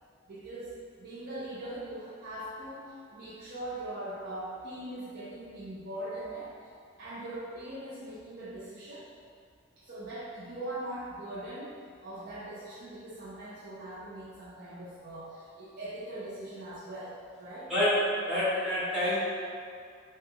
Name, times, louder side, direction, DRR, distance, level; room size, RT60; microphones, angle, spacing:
voice 1, 0.3-0.7 1.0-6.7 7.0-9.1 9.8-11.8 12.0-17.7, right 1 dB, 55° right, -9 dB, 0.5 m, -41 dB
voice 2, 18.3-19.2, left 1 dB, 5° right, -14 dB, 1.1 m, -27 dB
3.3 x 2.3 x 2.8 m, 2.2 s
head